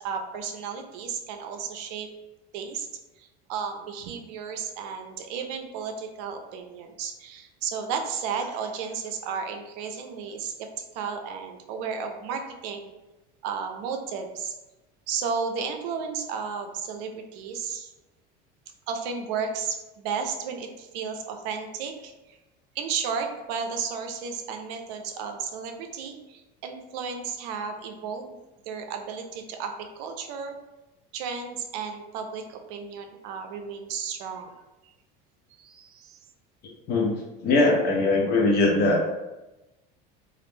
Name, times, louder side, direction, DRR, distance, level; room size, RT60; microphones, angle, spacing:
voice 1, 0.0-2.1 2.5-2.9 3.2-12.9 13.4-14.6 15.1-17.9 18.9-22.4 22.8-28.4 28.6-30.6 31.1-34.5 35.5-36.2, right 6 dB, 75° right, 5 dB, 0.4 m, -33 dB
voice 2, 37.4-39.0, left 2 dB, 50° left, 0 dB, 0.7 m, -21 dB
2.4 x 2.0 x 3.1 m, 1.0 s
supercardioid pair, 130°, 21 cm